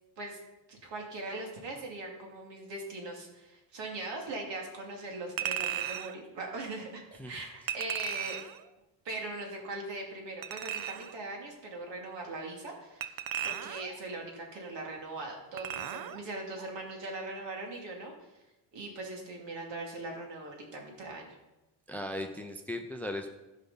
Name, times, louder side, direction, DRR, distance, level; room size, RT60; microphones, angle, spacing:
voice 1, 0.7-8.4 9.0-13.1 13.4-18.1 18.7-21.4, right 2 dB, 70° right, 0 dB, 2.8 m, -40 dB
Chink clink, 5.4-6.2 7.7-8.6 10.4-11.2 13.0-14.0 15.6-16.2 16.6-16.7, right 9 dB, 50° right, 0.6 m, -36 dB
voice 2, 21.9-23.3, left 1 dB, 5° left, 6 dB, 0.4 m, -37 dB
15.0 x 5.6 x 5.6 m, 1.0 s
cardioid pair, 175°, 45 cm